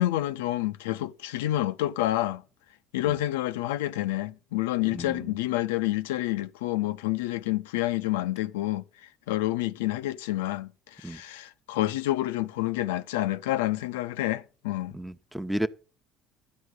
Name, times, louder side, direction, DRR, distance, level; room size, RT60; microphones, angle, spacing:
voice 1, 0.0-2.4 2.9-8.8 9.3-14.9, left 15 dB, 90° left, 0.4 m, -28 dB
voice 2, 4.9-5.3 11.0-11.2 14.9-15.7, right 1 dB, 5° right, 0.9 m, -32 dB
12.0 x 4.9 x 8.0 m
supercardioid pair, 75°, 0 cm